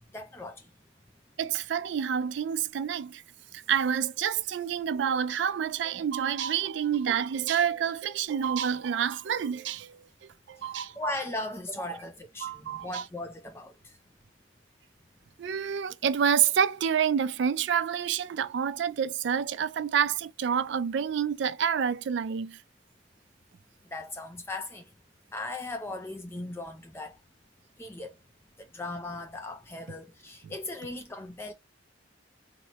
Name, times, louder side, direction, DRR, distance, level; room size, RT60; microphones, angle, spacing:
voice 1, 0.1-0.7 11.0-13.9 23.9-24.8 25.3-27.2 27.8-28.1 28.6-31.5, left 2 dB, 15° left, 0.4 m, -38 dB
voice 2, 1.4-3.2 3.5-11.1 12.4-13.0 15.4-22.6 30.4-30.5, right 8 dB, 65° right, 0.3 m, -28 dB
4.2 x 2.0 x 2.8 m
head